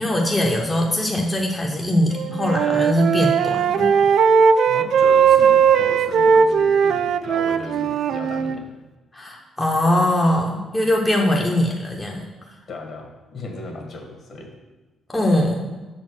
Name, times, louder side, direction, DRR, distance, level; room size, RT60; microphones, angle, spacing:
voice 1, 0.0-3.9 9.1-12.3 15.1-15.6, left 1 dB, 15° left, 0 dB, 0.9 m, -21 dB
Wind instrument woodwind instrument, 2.1-8.6, right 6 dB, 70° right, 0.3 m, -18 dB
voice 2, 4.6-8.7 12.7-14.5, left 2 dB, 55° left, 2 dB, 1.6 m, -36 dB
6.6 x 4.4 x 6.1 m, 1.2 s
cardioid pair, 90°, 0 cm